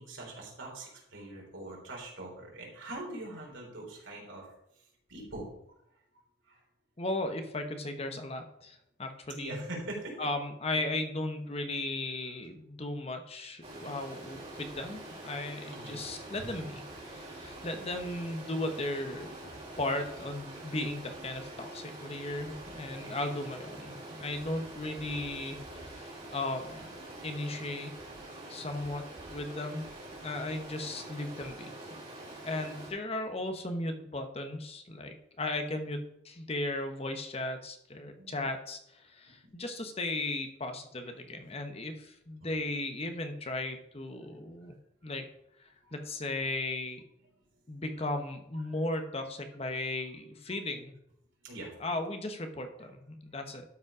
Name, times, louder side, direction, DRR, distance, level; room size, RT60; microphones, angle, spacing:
voice 1, 0.0-4.5 5.1-5.5 6.5-6.6 9.3-10.2 15.7-16.0 16.4-16.5 23.0-23.2 33.3-33.4 38.2-38.4 42.4-42.5 45.8-46.0 51.4-51.7, right 2 dB, 90° right, -1 dB, 3.5 m, -43 dB
voice 2, 7.0-9.6 10.2-19.3 19.8-26.9 27.2-27.9 28.5-29.9 30.2-31.7 32.4-44.7 45.0-45.3 45.9-47.0 47.7-51.0 51.8-53.6, left 2 dB, 35° left, 6 dB, 1.0 m, -36 dB
Stream, 13.6-32.9, right 1 dB, 30° right, 3.2 m, -45 dB
12.0 x 5.3 x 4.8 m, 0.79 s
head